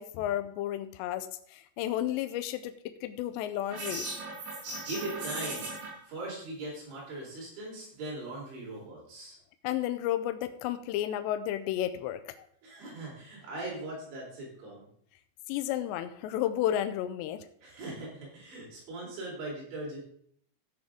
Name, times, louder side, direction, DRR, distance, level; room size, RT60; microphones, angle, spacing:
voice 1, 0.0-4.1 9.6-12.4 15.5-17.5, left 12 dB, 85° left, 10 dB, 2.6 m, -32 dB
sound 1, 3.7-5.9, right 2 dB, 55° right, 6.1 m, -37 dB
voice 2, 4.7-9.4 12.6-14.9 17.6-20.0, right 2 dB, 70° right, -4 dB, 6.1 m, -40 dB
15.5 x 6.4 x 3.6 m, 0.64 s
omnidirectional pair, 5.5 m